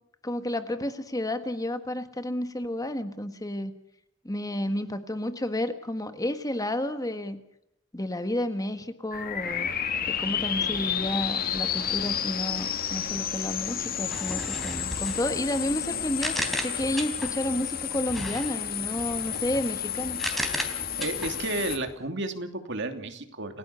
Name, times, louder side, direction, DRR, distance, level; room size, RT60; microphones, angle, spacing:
voice 1, 0.2-3.7 4.2-7.4 7.9-9.7 10.0-16.4 16.6-20.2, left 1 dB, 15° left, 9 dB, 1.5 m, -31 dB
sound 1, 9.1-21.8, left 8 dB, 45° left, 2.1 m, -31 dB
sound 2, 14.1-17.5 18.1-22.0, equal, ahead, 3.6 m, -36 dB
voice 2, 20.7-23.6, right 2 dB, 60° right, 7 dB, 2.8 m, -32 dB
29.0 x 17.0 x 6.9 m, 0.76 s
head